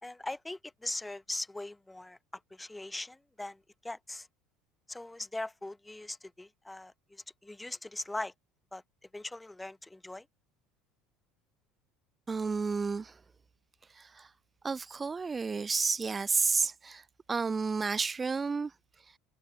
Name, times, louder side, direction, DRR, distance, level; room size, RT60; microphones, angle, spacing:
voice 1, 0.0-2.2 2.5-4.3 4.9-8.3 8.7-8.8 9.1-10.2, left 2 dB, 10° left, 2.8 m, -40 dB
voice 2, 12.3-13.2 13.9-14.3 14.6-18.7, right 4 dB, 25° right, 3.5 m, -31 dB
hypercardioid pair, 70°, 0 cm